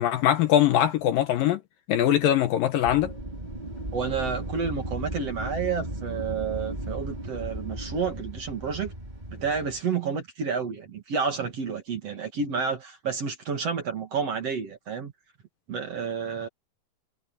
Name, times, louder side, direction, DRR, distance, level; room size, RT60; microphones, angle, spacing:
voice 1, 0.0-1.6 1.9-3.1, left 11 dB, 70° left, 2.4 m, -22 dB
Wind, 2.8-9.8, right 1 dB, 10° right, 4.7 m, -36 dB
voice 2, 3.9-8.9 9.3-15.1 15.7-16.5, right 5 dB, 45° right, 2.7 m, -30 dB
omnidirectional pair, 4.7 m